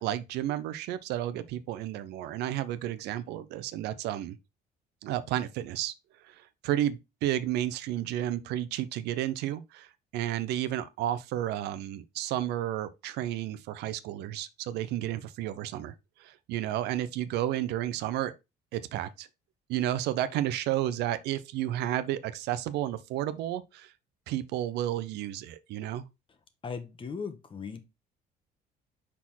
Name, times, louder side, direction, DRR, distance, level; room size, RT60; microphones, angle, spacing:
voice 1, 0.0-4.4 5.0-5.9 6.2-9.9 10.1-15.9 16.2-18.3 18.7-19.3 19.7-23.9 24.3-26.0, right 12 dB, 85° right, 0.6 m, -32 dB
voice 2, 26.6-27.8, left 5 dB, 30° left, 1.2 m, -37 dB
5.6 x 4.2 x 4.4 m
cardioid pair, 110°, 17 cm